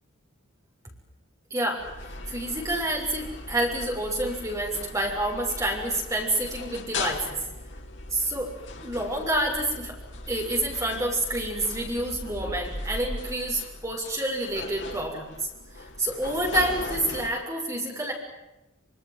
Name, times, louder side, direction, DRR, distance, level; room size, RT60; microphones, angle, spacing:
voice 1, 1.5-1.8 2.3-7.4 8.1-8.5 8.8-10.0 10.3-15.3 16.0-18.1, right 1 dB, 15° right, 1 dB, 6.7 m, -28 dB
sound 1, 1.8-17.3, left 2 dB, 60° left, 3.7 m, -38 dB
27.0 x 26.5 x 7.7 m, 0.96 s
head